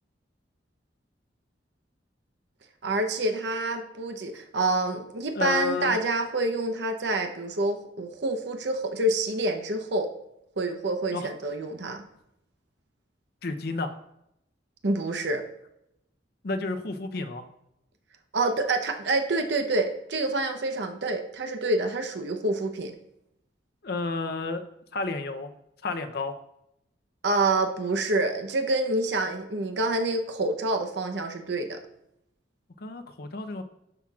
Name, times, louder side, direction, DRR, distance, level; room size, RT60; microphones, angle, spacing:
voice 1, 2.8-10.1 10.6-12.1 14.8-15.4 18.3-22.9 27.2-31.8, right 2 dB, 65° right, 5 dB, 0.8 m, -27 dB
voice 2, 5.3-5.9 11.1-11.3 13.4-14.0 16.4-17.5 23.8-24.7 24.9-25.5 25.8-26.3 32.8-33.6, left 3 dB, 55° left, 7 dB, 0.6 m, -31 dB
12.0 x 5.8 x 2.4 m, 0.81 s
head